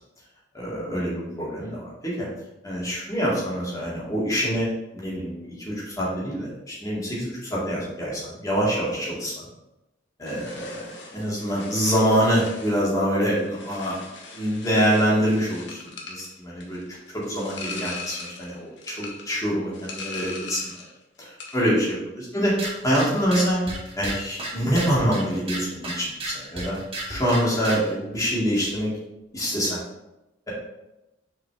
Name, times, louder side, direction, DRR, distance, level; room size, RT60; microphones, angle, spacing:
voice 1, 0.5-2.3 2.6-4.7 4.9-9.5 10.2-16.8 17.1-20.7 21.2-22.5 22.8-23.6 24.0-26.8 27.1-28.9 29.3-29.8, equal, 20° left, -7 dB, 2.4 m, -25 dB
sound 1, 10.2-20.9 21.2-21.7, left 4 dB, 70° left, 1.2 m, -40 dB
sound 2, 22.4-27.9, right 2 dB, 30° right, 1.7 m, -35 dB
6.3 x 4.9 x 3.5 m, 0.93 s
head